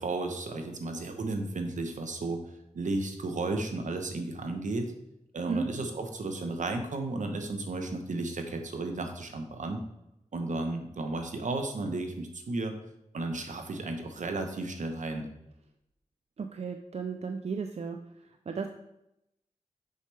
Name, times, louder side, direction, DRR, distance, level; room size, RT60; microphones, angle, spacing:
voice 1, 0.0-2.4 2.7-4.9 5.3-9.8 10.3-12.7 13.1-15.3, right 2 dB, 75° right, 5 dB, 0.9 m, -33 dB
voice 2, 16.4-18.0 18.5-18.7, right 5 dB, 55° right, 5 dB, 0.5 m, -34 dB
6.5 x 5.6 x 3.3 m, 0.85 s
cardioid pair, 55°, 13 cm